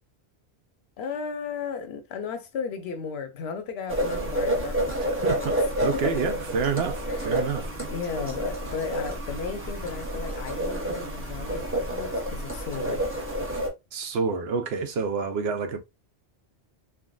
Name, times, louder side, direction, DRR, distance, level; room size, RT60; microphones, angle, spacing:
voice 1, 1.0-5.5 5.9-6.3 7.1-7.5 7.9-13.0, left 6 dB, 75° left, 0.9 m, -35 dB
sound 1, 3.9-13.7, right 1 dB, 15° right, 0.6 m, -29 dB
voice 2, 5.0-5.5 5.8-7.7 13.9-15.8, right 5 dB, 70° right, 0.8 m, -28 dB
3.4 x 2.2 x 2.3 m
omnidirectional pair, 1.1 m